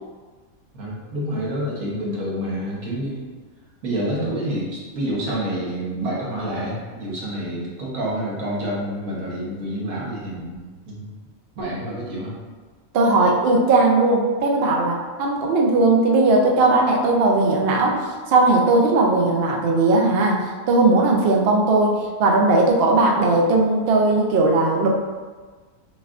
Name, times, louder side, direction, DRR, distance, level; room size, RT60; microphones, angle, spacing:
voice 1, 0.7-3.3 3.8-11.1 11.5-12.4, right 1 dB, 85° right, -5 dB, 1.5 m, -28 dB
voice 2, 12.9-18.0 18.3-24.9, right 2 dB, 60° right, 0 dB, 0.7 m, -18 dB
6.0 x 2.4 x 2.4 m, 1.4 s
omnidirectional pair, 1.5 m